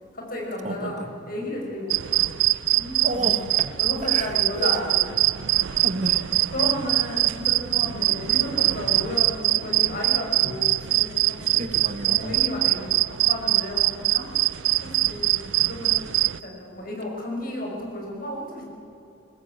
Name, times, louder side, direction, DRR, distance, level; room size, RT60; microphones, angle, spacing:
voice 1, 0.1-2.3 2.7-3.5 3.8-5.0 6.5-11.6 12.1-14.3 14.8-16.1 16.4-18.7, left 1 dB, 50° left, 0 dB, 5.6 m, -33 dB
voice 2, 0.6-1.1 3.0-3.7 4.0-4.8 5.5-6.3 10.5-10.6 11.6-12.4, right 1 dB, 40° right, 6 dB, 1.8 m, -32 dB
sound 1, 1.9-16.4, right 17 dB, 85° right, 0.5 m, -23 dB
21.0 x 19.5 x 9.0 m, 2.9 s
head